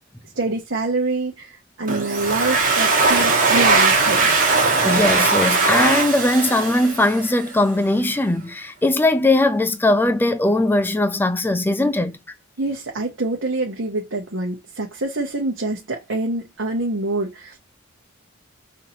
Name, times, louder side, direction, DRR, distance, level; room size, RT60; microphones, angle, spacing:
voice 1, 0.3-4.3 12.6-17.6, right 2 dB, 65° right, 1.0 m, -26 dB
Domestic sounds home sounds, 1.9-7.5, right 3 dB, 40° right, 1.3 m, -19 dB
voice 2, 4.8-12.2, left 2 dB, 10° left, 0.4 m, -19 dB
5.5 x 2.7 x 2.8 m
head